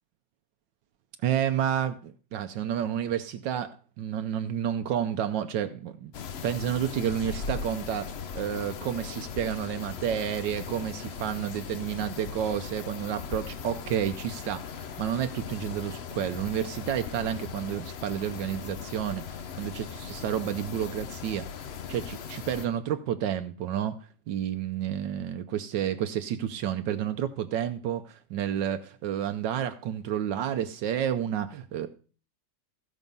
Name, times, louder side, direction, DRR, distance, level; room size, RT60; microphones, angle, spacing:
voice 1, 1.2-6.1 6.4-21.5 21.9-24.0 24.3-31.9, right 10 dB, 80° right, 8 dB, 1.4 m, -30 dB
sound 1, 6.1-22.7, left 6 dB, 60° left, 0.7 m, -39 dB
15.5 x 6.2 x 5.4 m, 0.39 s
omnidirectional pair, 1.9 m